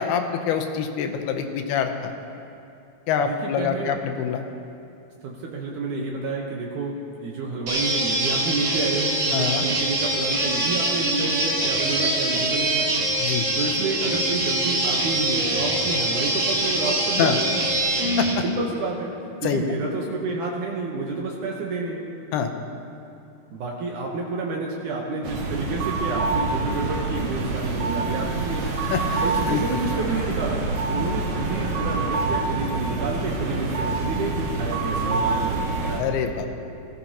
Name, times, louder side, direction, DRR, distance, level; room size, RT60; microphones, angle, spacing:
voice 1, 0.0-2.1 3.1-4.4 9.3-9.6 13.2-13.5 17.2-17.4 18.2-18.4 19.4-19.6 22.3-22.5 28.9-29.0 29.5-29.6 36.0-36.5, left 8 dB, 80° left, 5 dB, 2.7 m, -25 dB
voice 2, 3.2-3.9 5.2-12.9 13.6-17.6 18.4-19.1 19.4-22.0 23.5-28.7 29.2-35.6, right 3 dB, 70° right, -1 dB, 2.1 m, -29 dB
sound 1, 7.7-18.3, right 1 dB, 50° right, 3.1 m, -24 dB
sound 2, 25.2-36.0, right 3 dB, 90° right, 3.7 m, -26 dB
19.5 x 14.5 x 2.9 m, 2.6 s
omnidirectional pair, 4.6 m